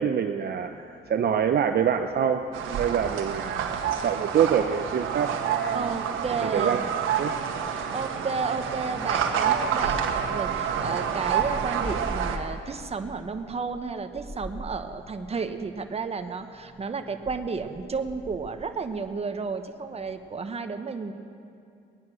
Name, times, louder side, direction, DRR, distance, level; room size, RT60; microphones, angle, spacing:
voice 1, 0.0-5.9 6.4-6.8 7.2-7.3, right 8 dB, 50° right, 6 dB, 0.7 m, -26 dB
sound 1, 0.6-20.3, equal, 5° left, 4.4 m, -45 dB
sound 2, 2.5-12.4, right 7 dB, 80° right, 1.4 m, -28 dB
voice 2, 5.7-6.8 7.9-21.1, right 4 dB, 30° right, 7 dB, 1.1 m, -32 dB
21.0 x 9.5 x 6.3 m, 2.4 s
cardioid pair, 90°, 20 cm